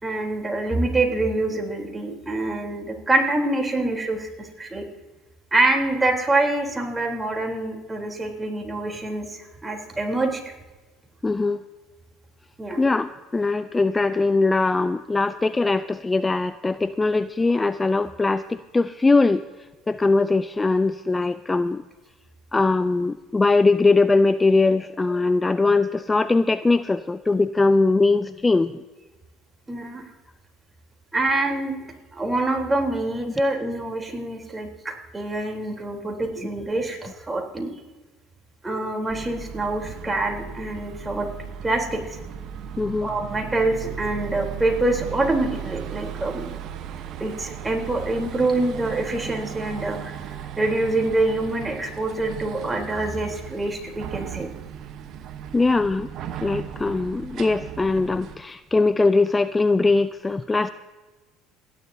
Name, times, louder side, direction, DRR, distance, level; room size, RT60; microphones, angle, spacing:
voice 1, 0.0-4.8 5.5-10.5 12.6-12.8 29.7-30.0 31.1-31.8 32.1-37.7 38.6-41.3 41.6-42.2 43.0-46.5 47.2-54.5, right 2 dB, 15° right, 1 dB, 3.6 m, -25 dB
voice 2, 11.2-11.6 12.8-19.4 19.9-21.8 22.5-28.8 42.8-43.1 55.5-56.1 56.4-60.7, left 3 dB, 20° left, 14 dB, 0.4 m, -21 dB
sound 1, 39.1-58.4, right 9 dB, 55° right, 1.0 m, -36 dB
28.5 x 11.0 x 2.8 m, 1.2 s
hypercardioid pair, 70°, 0 cm